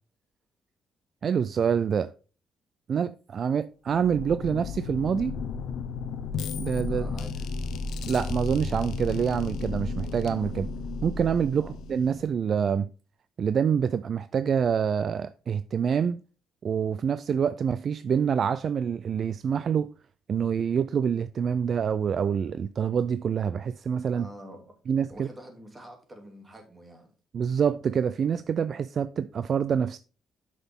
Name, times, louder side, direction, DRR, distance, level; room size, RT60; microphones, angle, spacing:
voice 1, 1.2-2.1 2.9-5.4 6.6-7.0 8.1-10.7 11.0-12.9 13.4-16.2 16.6-19.9 20.3-24.3 24.9-25.3 27.3-30.0, right 7 dB, 55° right, 0.4 m, -26 dB
sound 1, 3.9-12.4, left 4 dB, 75° left, 0.8 m, -33 dB
voice 2, 6.9-7.5 11.5-11.7 24.1-24.8 25.1-27.1, equal, 20° right, 2.6 m, -46 dB
7.9 x 6.2 x 3.6 m
cardioid pair, 90°, 0 cm